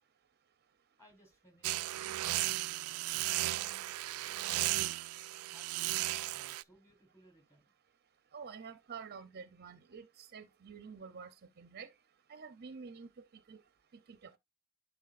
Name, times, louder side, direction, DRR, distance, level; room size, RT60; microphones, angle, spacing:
voice 1, 1.0-7.7, equal, 15° left, 4.1 m, -65 dB
sound 1, 1.6-6.6, right 17 dB, 85° right, 0.3 m, -35 dB
voice 2, 8.3-11.3 11.6-11.9 12.3-13.6 14.1-14.3, right 5 dB, 50° right, 0.6 m, -48 dB
11.5 x 4.5 x 2.5 m
head